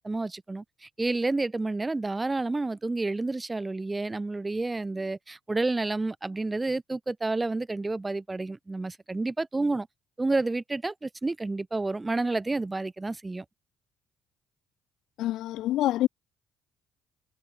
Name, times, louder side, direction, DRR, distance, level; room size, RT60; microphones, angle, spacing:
voice 1, 0.0-9.9 10.2-13.4, right 2 dB, 20° right, 5.7 m, -30 dB
voice 2, 15.2-16.1, left 14 dB, 75° left, 4.3 m, -26 dB
supercardioid pair, 70°, 0 cm